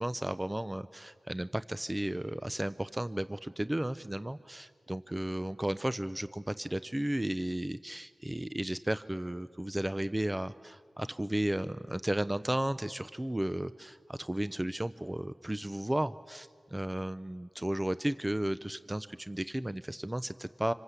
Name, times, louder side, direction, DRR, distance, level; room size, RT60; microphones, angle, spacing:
voice 1, 0.0-20.7, right 1 dB, 20° right, 13 dB, 0.6 m, -34 dB
26.5 x 26.5 x 8.3 m, 2.2 s
cardioid pair, 45°, 0 cm